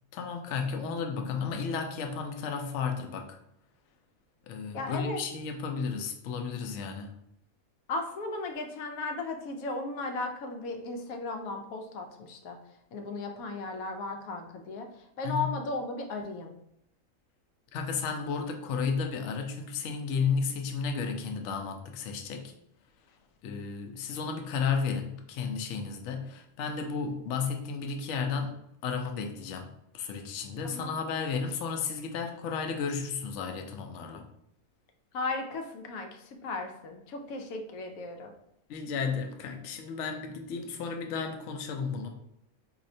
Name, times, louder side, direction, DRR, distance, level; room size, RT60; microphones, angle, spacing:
voice 1, 0.1-3.4 4.4-7.1 15.2-15.5 17.7-22.5 23.4-34.2 38.7-42.1, left 5 dB, 65° left, 4 dB, 0.8 m, -33 dB
voice 2, 4.7-5.2 7.9-12.6 12.9-14.9 15.2-16.6 30.6-30.9 35.1-38.3, left 3 dB, 85° left, 4 dB, 1.0 m, -36 dB
4.2 x 2.8 x 2.6 m, 0.75 s
omnidirectional pair, 1.4 m